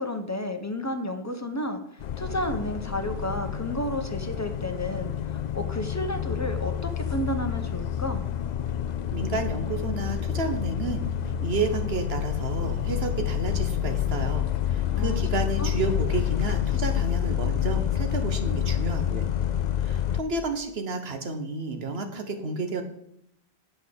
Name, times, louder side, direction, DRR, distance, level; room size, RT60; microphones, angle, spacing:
voice 1, 0.0-1.8 2.2-5.1 5.5-8.3 14.9-15.7, left 1 dB, 15° left, 6 dB, 0.8 m, -31 dB
sound 1, 2.0-20.2, left 10 dB, 55° left, 0.5 m, -28 dB
voice 2, 9.1-11.0 11.4-19.3 19.8-22.8, right 3 dB, 65° right, 6 dB, 1.4 m, -31 dB
8.6 x 5.5 x 7.8 m, 0.75 s
omnidirectional pair, 1.1 m